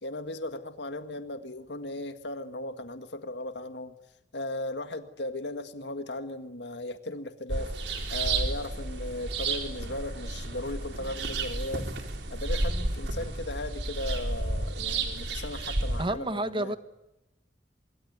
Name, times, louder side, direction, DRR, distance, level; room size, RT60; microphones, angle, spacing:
voice 1, 0.0-4.0 4.3-7.7 8.1-11.9 12.3-16.8, left 2 dB, 80° left, 8 dB, 1.9 m, -37 dB
sound 1, 7.5-16.1, right 2 dB, 80° right, 4.2 m, -32 dB
voice 2, 16.0-16.8, right 1 dB, 30° right, 11 dB, 1.4 m, -29 dB
25.0 x 23.0 x 9.5 m, 0.92 s
head